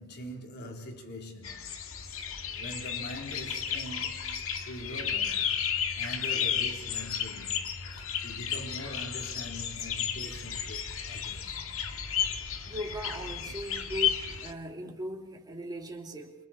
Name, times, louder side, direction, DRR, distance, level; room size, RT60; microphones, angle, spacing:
voice 1, 0.0-1.8 2.1-2.3 2.6-5.5 6.0-7.7 8.2-11.6 13.4-13.6, equal, 50° left, 3.8 m, -43 dB
sound 1, 1.4-14.5, left 8 dB, 70° left, 2.0 m, -33 dB
voice 2, 12.6-16.4, equal, 20° right, 3.1 m, -38 dB
29.5 x 28.5 x 4.4 m
head